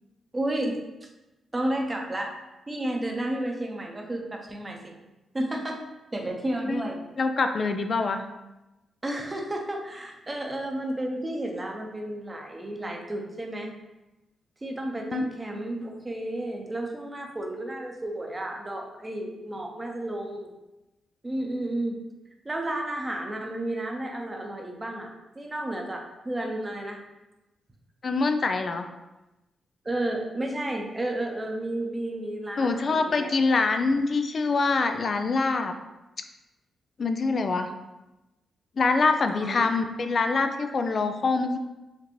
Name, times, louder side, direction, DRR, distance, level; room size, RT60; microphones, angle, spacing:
voice 1, 0.3-0.8 1.5-2.4 2.7-4.9 5.3-5.8 6.1-7.0 9.0-13.7 14.6-20.5 21.2-22.0 22.4-27.0 29.8-33.3 39.3-39.7, right 1 dB, 25° right, 1 dB, 0.8 m, -32 dB
voice 2, 7.2-8.2 15.1-15.2 15.5-15.6 28.0-28.9 32.6-35.7 37.0-37.7 38.8-41.6, left 4 dB, 55° left, 7 dB, 0.4 m, -25 dB
4.3 x 2.5 x 3.0 m, 1.0 s
supercardioid pair, 45°, 0 cm